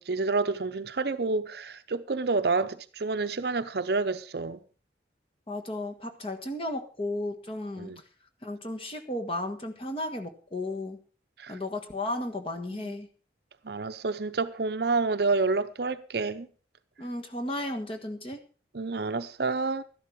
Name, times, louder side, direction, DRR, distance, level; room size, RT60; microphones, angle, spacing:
voice 1, 0.0-4.6 7.8-8.0 11.4-11.6 12.7-12.9 13.6-16.5 18.7-19.8, right 3 dB, 55° right, 0.7 m, -29 dB
voice 2, 5.5-7.9 8.4-11.0 11.5-13.1 17.0-18.4, left 1 dB, 30° left, 1.5 m, -34 dB
13.0 x 11.5 x 4.7 m
head